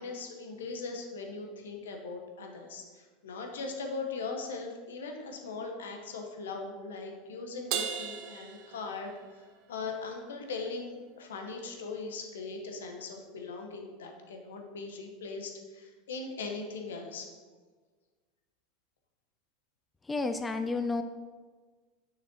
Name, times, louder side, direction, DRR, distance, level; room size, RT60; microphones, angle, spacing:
voice 1, 0.0-9.4 9.7-17.3, left 4 dB, 80° left, 3 dB, 1.0 m, -40 dB
Crash cymbal, 7.7-9.4, right 8 dB, 60° right, 0.5 m, -36 dB
voice 2, 20.1-21.0, left 3 dB, 15° left, 8 dB, 0.4 m, -31 dB
6.8 x 6.2 x 2.9 m, 1.4 s
hypercardioid pair, 90°, 0 cm